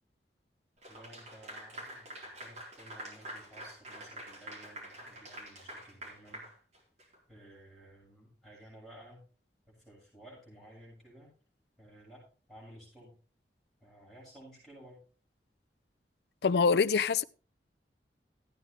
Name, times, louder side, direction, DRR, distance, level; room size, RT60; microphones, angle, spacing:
Clapping / Applause, 0.8-7.2, right 1 dB, 40° right, 4.1 m, -46 dB
voice 1, 0.9-6.5 7.3-9.2 9.7-11.3 11.8-12.2 12.5-13.1 13.8-15.0, right 1 dB, ahead, 7.2 m, -55 dB
voice 2, 16.4-17.2, left 5 dB, 65° left, 0.5 m, -25 dB
14.5 x 9.1 x 3.2 m
head